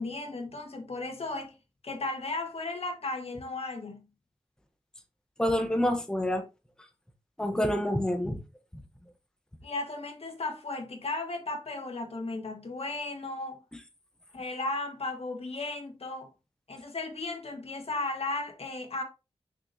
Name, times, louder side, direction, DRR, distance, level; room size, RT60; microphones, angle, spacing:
voice 1, 0.0-1.5 1.8-4.1 9.6-13.6 14.3-16.3 16.7-19.0, left 2 dB, 65° left, 1.8 m, -35 dB
voice 2, 5.4-6.4 7.4-8.4, left 1 dB, 5° left, 1.1 m, -27 dB
6.1 x 6.0 x 2.9 m
wide cardioid pair, 65°, 11 cm